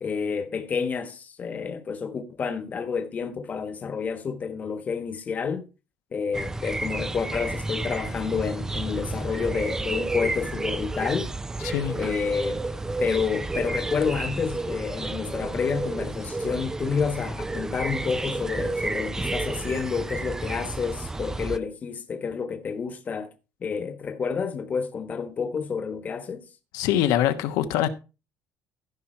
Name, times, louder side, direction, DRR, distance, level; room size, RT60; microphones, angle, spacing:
voice 1, 0.0-5.6 6.1-11.3 11.9-12.6 13.0-23.3 23.6-26.4, left 6 dB, 25° left, 1.3 m, -29 dB
sound 1, 6.3-21.6, right 2 dB, 10° right, 0.4 m, -31 dB
voice 2, 11.6-11.9 26.7-27.9, left 11 dB, 80° left, 1.2 m, -23 dB
15.0 x 6.0 x 4.4 m
cardioid pair, 175°, 6 cm